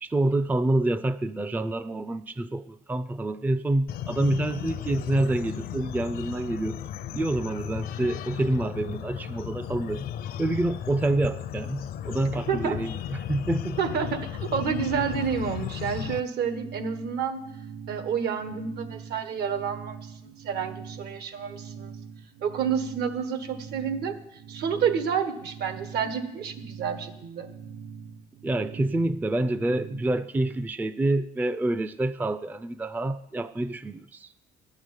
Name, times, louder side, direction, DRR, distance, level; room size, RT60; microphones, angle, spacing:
voice 1, 0.0-6.8 7.1-10.1 10.4-13.8 28.4-34.3, right 2 dB, 10° right, 13 dB, 0.4 m, -27 dB
sound 1, 3.9-16.2, left 10 dB, 65° left, 0.6 m, -35 dB
voice 2, 12.5-12.8 13.8-17.4 17.9-21.9 22.4-24.2 24.5-27.5, right 7 dB, 75° right, 9 dB, 1.4 m, -29 dB
sound 2, 16.0-30.6, right 6 dB, 90° right, 1.0 m, -43 dB
11.5 x 6.6 x 9.5 m, 0.81 s
cardioid pair, 110°, 17 cm